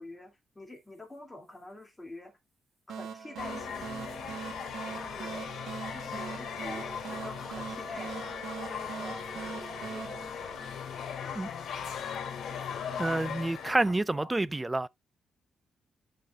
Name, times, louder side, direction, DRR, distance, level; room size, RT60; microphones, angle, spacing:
voice 1, 0.0-2.3 2.9-4.0 4.9-5.6 5.9-10.7 11.7-11.8 13.8-14.4, left 2 dB, 15° left, 2.3 m, -48 dB
sound 1, 2.9-11.2, right 6 dB, 80° right, 1.2 m, -42 dB
sound 2, 3.4-13.9, left 7 dB, 75° left, 2.2 m, -38 dB
voice 2, 11.2-11.5 13.0-14.9, right 2 dB, 15° right, 0.3 m, -29 dB
11.0 x 4.2 x 2.3 m
cardioid pair, 110°, 0 cm